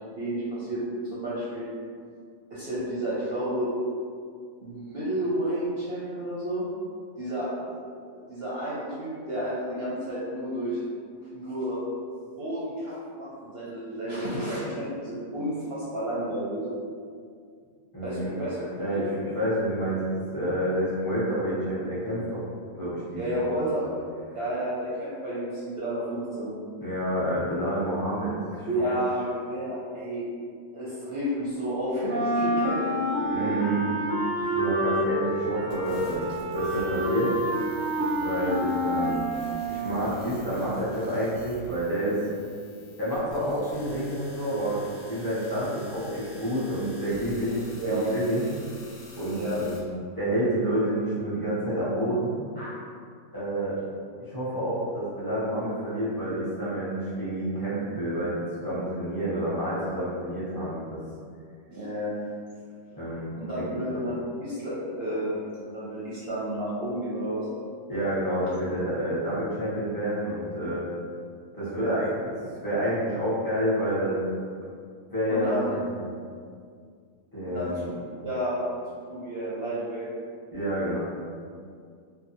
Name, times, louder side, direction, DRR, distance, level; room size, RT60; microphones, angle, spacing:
voice 1, 0.0-1.7 2.5-3.7 4.6-6.7 7.2-7.7 8.1-10.8 11.3-11.8 12.4-16.6 18.0-18.6 18.9-19.1 23.2-23.9 24.3-26.5 28.7-30.2 30.7-33.5 47.8-48.1 49.3-49.6 52.6-52.7 61.7-62.2 63.4-64.1 64.4-67.5 71.6-72.0 75.3-75.7 77.4-77.9 78.2-78.6 79.1-80.1, right 1 dB, 60° right, -9 dB, 0.7 m, -31 dB
voice 2, 17.9-18.3 18.8-22.4 22.7-23.8 26.8-28.8 33.3-33.8 34.4-37.4 38.2-39.2 39.7-42.2 43.0-48.5 49.2-49.9 50.2-52.4 53.3-53.8 54.2-61.0 63.0-63.8 67.9-70.8 71.5-72.3 72.6-74.2 75.1-76.1 77.3-77.9 80.5-81.0, right 1 dB, 25° left, -11 dB, 0.5 m, -29 dB
Wind instrument woodwind instrument, 32.1-40.2, equal, 90° right, 1.0 m, -28 dB
sound 1, 35.7-49.8, left 2 dB, 75° left, 0.9 m, -48 dB
2.7 x 2.1 x 2.6 m, 2.2 s
omnidirectional pair, 1.4 m